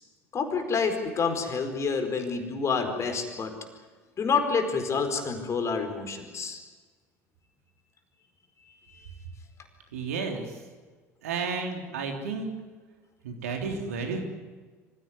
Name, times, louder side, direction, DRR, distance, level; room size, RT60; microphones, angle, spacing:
voice 1, 0.3-3.5 4.2-6.6 9.0-9.1, left 5 dB, 40° left, 6 dB, 4.6 m, -28 dB
voice 2, 9.9-10.6 11.2-12.5 13.2-14.2, right 4 dB, 80° right, 3 dB, 3.5 m, -32 dB
25.0 x 16.5 x 9.7 m, 1.4 s
hypercardioid pair, 70°, 8 cm